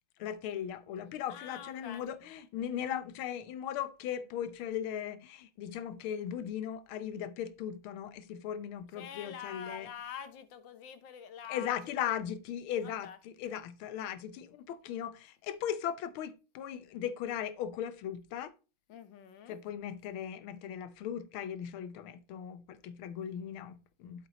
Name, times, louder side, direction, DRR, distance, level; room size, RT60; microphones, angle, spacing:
voice 1, 0.2-9.9 11.5-18.5 19.5-24.3, left 9 dB, 85° left, 1.6 m, -38 dB
voice 2, 1.3-2.1 8.9-12.0 12.8-13.2 18.9-19.6, left 8 dB, 65° left, 1.6 m, -46 dB
8.0 x 7.9 x 3.0 m
omnidirectional pair, 2.2 m